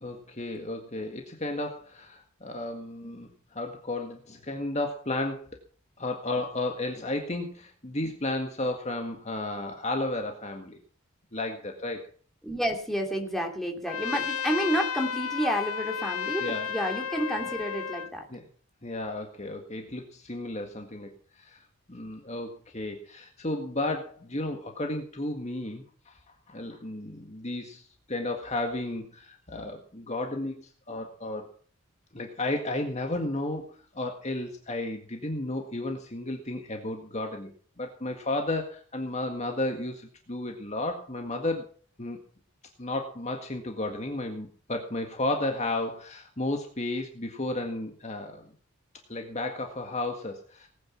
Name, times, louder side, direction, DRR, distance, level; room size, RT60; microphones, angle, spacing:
voice 1, 0.0-5.5 6.0-10.8 11.3-12.1 16.4-16.7 18.3-18.4 18.8-21.1 21.4-21.6 21.9-26.1 26.5-27.8 28.1-31.5 32.1-37.5 37.8-41.6 42.0-42.2 42.8-48.5 49.1-50.7, left 2 dB, 30° left, 3 dB, 1.8 m, -33 dB
voice 2, 12.4-18.2, equal, ahead, 1 dB, 3.0 m, -30 dB
Trumpet, 13.9-18.1, left 7 dB, 85° left, 1.0 m, -33 dB
19.0 x 9.5 x 6.0 m, 0.43 s
head